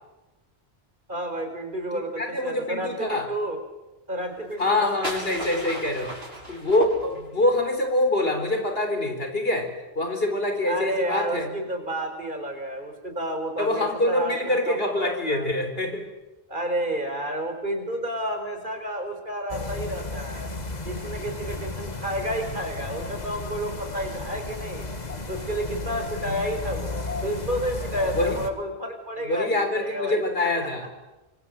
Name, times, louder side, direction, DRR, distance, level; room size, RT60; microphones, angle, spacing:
voice 1, 1.1-3.6 4.1-5.1 10.7-15.5 16.5-20.5 20.8-24.9 25.3-30.7, equal, 55° right, 5 dB, 4.9 m, -31 dB
voice 2, 1.9-3.3 4.6-6.2 6.5-11.5 13.6-16.0 26.3-26.4 28.1-28.4 29.2-30.8, left 1 dB, 70° left, 5 dB, 4.2 m, -25 dB
sound 1, 4.5-7.5, right 1 dB, 85° right, 7.0 m, -35 dB
sound 2, 19.5-28.5, left 2 dB, 45° left, 1.9 m, -34 dB
26.0 x 23.5 x 7.9 m, 1.1 s
omnidirectional pair, 1.0 m